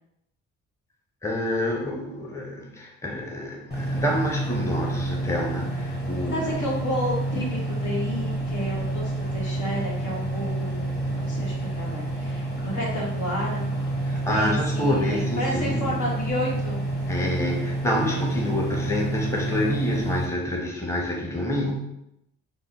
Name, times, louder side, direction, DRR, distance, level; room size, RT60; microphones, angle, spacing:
voice 1, 1.2-6.6 14.0-16.0 17.1-21.7, left 1 dB, 10° left, -1 dB, 0.7 m, -28 dB
sound 1, 3.7-20.3, right 2 dB, 35° left, 1.4 m, -29 dB
voice 2, 6.3-14.0 14.3-16.8, left 1 dB, 80° left, -3 dB, 1.3 m, -31 dB
3.8 x 2.2 x 4.0 m, 0.82 s
cardioid pair, 90°, 30 cm